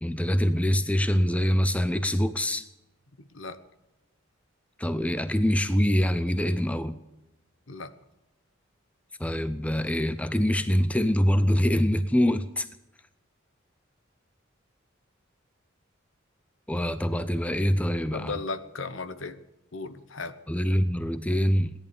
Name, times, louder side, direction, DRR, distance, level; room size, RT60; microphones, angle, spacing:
voice 1, 0.0-2.6 4.8-7.0 9.2-12.7 16.7-18.3 20.5-21.7, equal, 5° left, 12 dB, 0.5 m, -24 dB
voice 2, 18.1-19.4 19.7-20.4, left 3 dB, 65° left, 12 dB, 1.0 m, -35 dB
17.5 x 11.0 x 6.9 m, 0.97 s
head